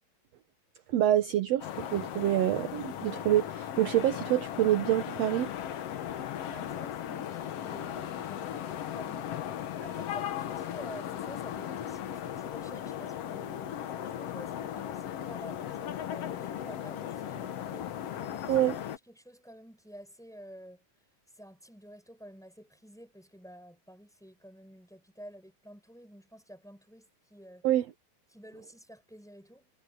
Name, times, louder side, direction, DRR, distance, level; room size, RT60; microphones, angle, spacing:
voice 1, 0.9-5.5 18.5-18.7 27.6-27.9, right 13 dB, 70° right, 1.6 m, -26 dB
sound 1, 1.6-19.0, left 10 dB, 65° left, 1.6 m, -37 dB
voice 2, 6.5-13.8 14.2-18.6 19.1-20.8 21.3-27.7 28.3-29.7, equal, ahead, 7.2 m, -50 dB
omnidirectional pair, 4.1 m